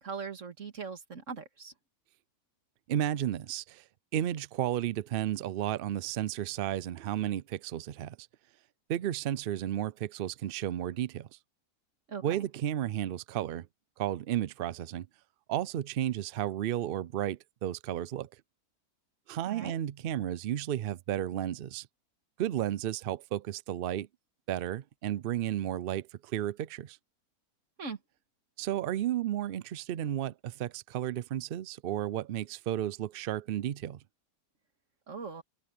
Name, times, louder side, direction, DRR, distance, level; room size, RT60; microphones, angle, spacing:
voice 1, 0.0-1.7 12.1-12.5 19.5-19.8 27.8-28.0 35.1-35.4, right 5 dB, 55° right, 2.2 m, -40 dB
voice 2, 2.9-3.8 4.1-8.2 8.9-11.3 12.2-13.7 14.0-15.1 15.5-18.3 19.3-21.9 22.4-24.1 24.5-27.0 28.6-34.0, right 11 dB, 90° right, 0.4 m, -33 dB
omnidirectional pair, 1.6 m